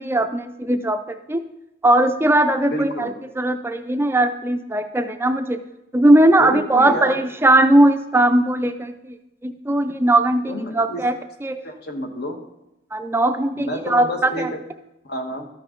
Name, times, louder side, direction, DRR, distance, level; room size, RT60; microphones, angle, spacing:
voice 1, 0.0-1.4 1.8-5.6 5.9-9.2 9.4-11.2 11.4-11.6 12.9-14.5, right 1 dB, 15° right, 8 dB, 0.4 m, -19 dB
voice 2, 2.7-3.2 6.4-7.3 10.5-11.0 11.6-12.4 13.5-14.5 15.0-15.5, equal, 60° left, 5 dB, 1.2 m, -29 dB
13.0 x 5.7 x 3.7 m, 0.91 s
head